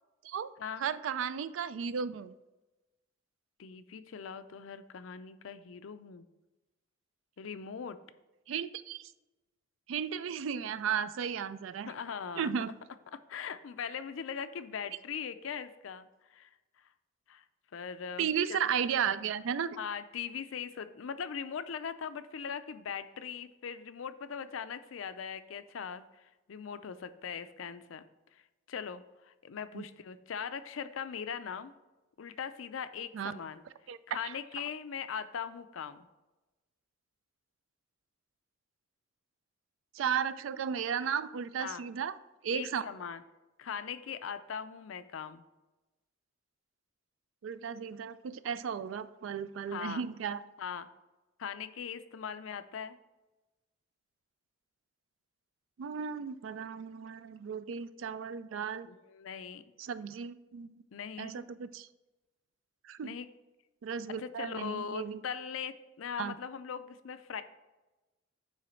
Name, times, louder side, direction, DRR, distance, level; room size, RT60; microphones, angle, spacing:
voice 1, 0.8-2.3 8.5-9.0 9.9-11.9 12.4-12.7 18.2-19.8 29.7-29.8 33.1-33.3 33.9-34.0 34.2-34.4 39.9-42.1 42.4-42.8 47.4-50.4 55.8-58.9 59.8-60.7 61.2-61.9 62.8-63.1 63.8-65.2 66.2-66.3, right 7 dB, 75° right, 14 dB, 0.3 m, -34 dB
voice 2, 3.6-6.2 7.4-8.0 11.9-12.5 13.1-16.5 17.3-17.4 17.7-18.6 19.8-26.1 26.5-28.1 28.7-31.7 32.2-33.6 34.1-36.1 41.6-41.8 42.5-43.2 43.6-45.4 49.7-50.0 50.6-50.9 51.4-53.0 58.9-59.6 60.9-61.5 63.0-63.3 64.2-67.4, left 7 dB, 80° left, 12 dB, 0.5 m, -40 dB
9.0 x 3.2 x 4.3 m, 1.1 s
head